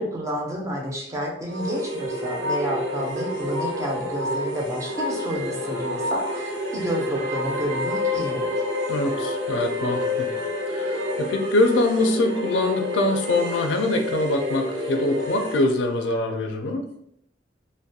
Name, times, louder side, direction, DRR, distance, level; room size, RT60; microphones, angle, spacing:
voice 1, 0.0-8.5, equal, 15° right, -1 dB, 0.5 m, -30 dB
sound 1, 1.5-15.7, left 1 dB, 85° right, 0.4 m, -28 dB
voice 2, 8.9-10.3 10.7-16.8, left 2 dB, 75° left, 4 dB, 0.4 m, -24 dB
2.4 x 2.1 x 2.7 m, 0.73 s
head